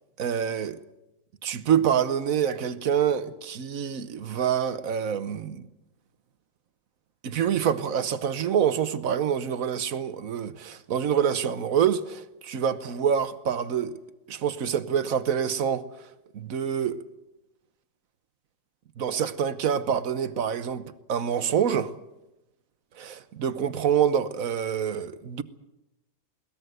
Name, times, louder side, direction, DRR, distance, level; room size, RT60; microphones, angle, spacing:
voice 1, 0.2-0.8 1.4-5.6 7.2-13.9 14.3-15.9 16.3-17.0 19.0-21.9 23.0-25.4, right 8 dB, 55° right, 1.2 m, -26 dB
21.5 x 19.0 x 7.9 m
omnidirectional pair, 2.0 m